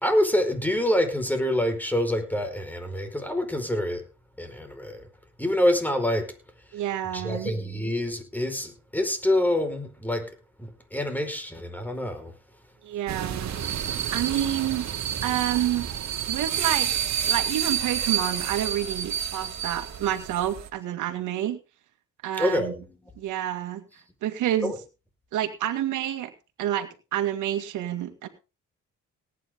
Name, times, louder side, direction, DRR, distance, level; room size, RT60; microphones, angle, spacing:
voice 1, 0.0-4.0 4.4-5.0 5.4-6.3 7.1-10.3 10.6-12.3 22.4-22.8 24.6-24.7, left 1 dB, 5° left, 4.8 m, -26 dB
voice 2, 6.7-7.5 12.8-13.6 14.1-14.9 15.2-15.9 16.3-16.9 17.3-21.6 22.2-22.8 23.2-23.8 24.2-24.7 25.3-26.3 26.6-28.3, right 11 dB, 90° right, 2.2 m, -28 dB
sound 1, 13.1-20.7, right 9 dB, 65° right, 2.2 m, -29 dB
18.5 x 9.9 x 3.7 m
cardioid pair, 90°, 30 cm